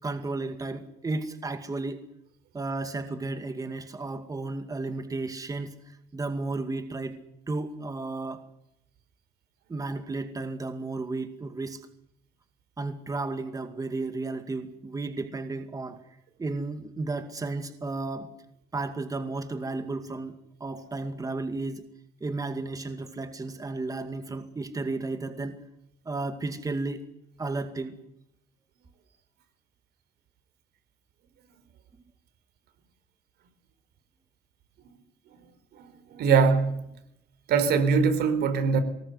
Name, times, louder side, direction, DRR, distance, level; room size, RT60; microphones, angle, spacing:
voice 1, 0.0-2.0 2.5-7.2 7.5-8.5 9.7-11.9 12.8-16.0 16.4-18.3 18.7-21.8 22.2-25.6 26.1-27.1 27.4-28.0, right 3 dB, 20° right, 8 dB, 2.3 m, -33 dB
voice 2, 35.8-36.8 37.5-38.8, right 5 dB, 70° right, 11 dB, 4.2 m, -22 dB
23.5 x 20.0 x 8.1 m, 0.78 s
cardioid pair, 110°, 17 cm